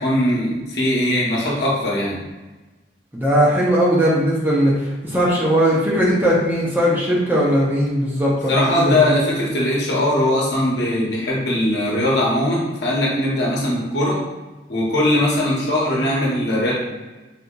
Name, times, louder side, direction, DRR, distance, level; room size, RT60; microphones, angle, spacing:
voice 1, 0.0-2.2 8.5-14.2 14.7-16.7, left 1 dB, 65° left, -4 dB, 0.9 m, -20 dB
voice 2, 3.1-9.2, equal, 10° right, -6 dB, 0.5 m, -18 dB
3.9 x 2.7 x 2.3 m, 1.2 s
head